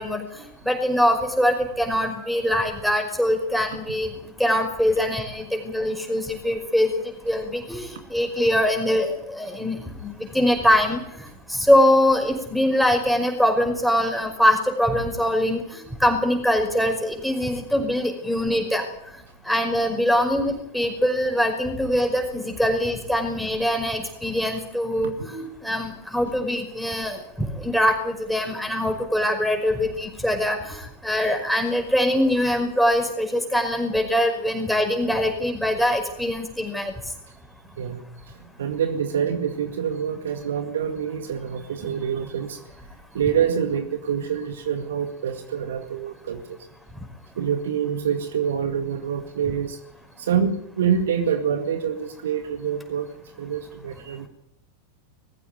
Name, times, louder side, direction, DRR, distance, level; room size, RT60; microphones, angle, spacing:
voice 1, 0.0-4.1 4.4-6.9 7.2-11.0 11.5-18.8 19.5-36.9, equal, ahead, 3 dB, 5.4 m, -23 dB
voice 2, 38.6-42.6 43.1-46.6 47.4-49.8 50.2-53.1 53.4-54.3, right 8 dB, 60° right, 8 dB, 2.0 m, -26 dB
21.0 x 15.5 x 9.4 m, 0.78 s
figure-of-eight pair, 90°, 0 cm